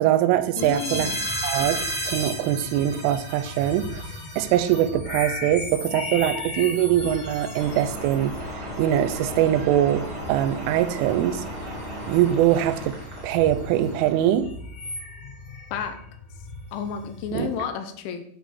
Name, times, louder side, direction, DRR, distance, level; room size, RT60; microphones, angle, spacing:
voice 1, 0.0-1.1 1.4-11.4 12.1-13.0 13.2-14.5 17.3-17.5, right 12 dB, 90° right, 11 dB, 3.1 m, -23 dB
voice 2, 0.6-1.3 15.7-16.0 16.7-18.2, left 7 dB, 80° left, 7 dB, 3.1 m, -31 dB
sound 1, 0.6-17.6, left 1 dB, 50° left, 1.0 m, -35 dB
sound 2, 7.5-14.3, equal, 40° right, 1.5 m, -36 dB
8.4 x 5.2 x 6.6 m, 0.66 s
omnidirectional pair, 5.6 m